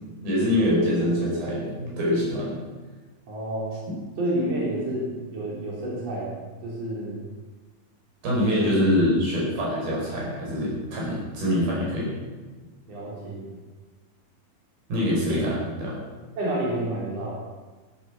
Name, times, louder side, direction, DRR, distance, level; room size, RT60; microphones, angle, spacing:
voice 1, 0.2-2.5 8.2-12.1 14.9-16.0, equal, 85° right, -4 dB, 7.0 m, -24 dB
voice 2, 3.3-3.8 4.2-6.4 6.6-7.2 8.6-8.8 12.9-13.5 15.2-15.5 16.4-17.4, right 1 dB, 45° right, -5 dB, 4.7 m, -29 dB
13.0 x 13.0 x 6.1 m, 1.3 s
omnidirectional pair, 4.1 m